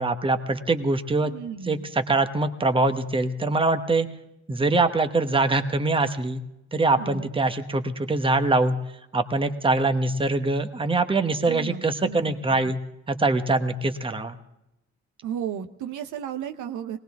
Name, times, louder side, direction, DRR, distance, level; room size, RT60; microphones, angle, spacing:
voice 1, 0.0-1.3 1.7-4.1 4.5-6.4 6.7-8.8 9.1-12.8 13.1-14.4, right 2 dB, 15° right, 7 dB, 1.1 m, -23 dB
voice 2, 1.2-1.9 7.0-7.3 11.4-12.4 15.2-17.0, right 8 dB, 80° right, 7 dB, 0.9 m, -34 dB
20.0 x 18.5 x 3.6 m, 0.88 s
cardioid pair, 90°, 30 cm